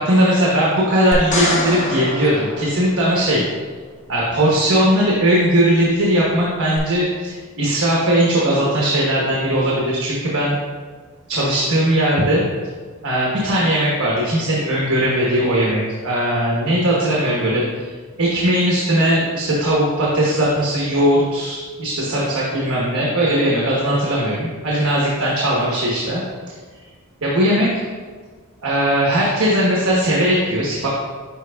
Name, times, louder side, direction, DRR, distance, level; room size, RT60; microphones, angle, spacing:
voice 1, 0.0-3.4 4.1-10.5 11.3-12.5 13.0-17.6 18.2-26.2 27.2-27.7 28.6-30.9, right 1 dB, 70° right, -5 dB, 1.1 m, -18 dB
sound 1, 1.1-3.4 6.8-6.9, left 1 dB, 35° left, 0.9 m, -25 dB
10.5 x 4.2 x 2.3 m, 1.5 s
head